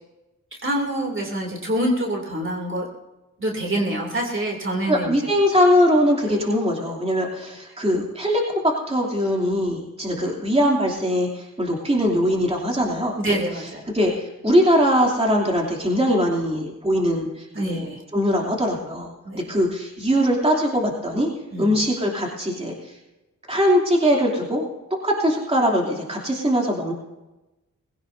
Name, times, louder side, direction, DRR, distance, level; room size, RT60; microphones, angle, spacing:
voice 1, 0.6-2.9 3.4-5.1 6.3-6.4 10.1-10.3 13.2-13.9 17.5-18.0 19.2-19.4 21.5-21.7, right 1 dB, 40° right, 0 dB, 3.0 m, -26 dB
voice 2, 4.9-13.7 13.9-14.1 14.4-17.9 18.1-19.1 19.5-21.3 21.6-22.7 23.5-24.7 25.0-26.9, equal, 20° right, -2 dB, 3.0 m, -21 dB
21.0 x 16.5 x 2.7 m, 1.0 s
wide cardioid pair, 85°, 32 cm